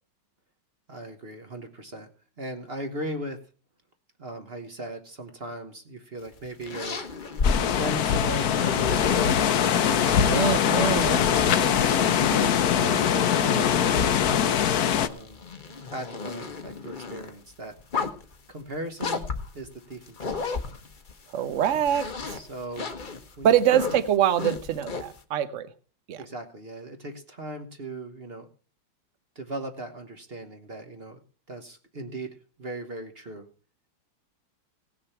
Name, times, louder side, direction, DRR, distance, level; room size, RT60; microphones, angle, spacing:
voice 1, 0.9-2.1 2.4-3.4 4.2-7.0 7.6-10.2 11.3-11.8 12.3-12.6 12.8-14.7 15.0-15.4 15.9-17.7 18.5-19.3 19.5-20.5 22.4-22.9 23.4-23.8 26.2-28.5 29.3-31.2 31.5-33.5, right 1 dB, 35° right, 6 dB, 1.1 m, -38 dB
sound 1, 6.2-9.4 9.9-14.4 14.9-17.3 17.8-18.3 19.0-21.1 21.5-25.2, left 5 dB, 35° left, 0.9 m, -33 dB
medium strength winds through trees summer ambience, 7.4-15.1, left 9 dB, 60° left, 1.1 m, -22 dB
voice 2, 10.3-11.3 21.3-22.4 23.4-25.7 26.1-26.2, right 10 dB, 55° right, 13 dB, 0.9 m, -24 dB
17.5 x 6.7 x 5.7 m, 0.40 s
omnidirectional pair, 2.3 m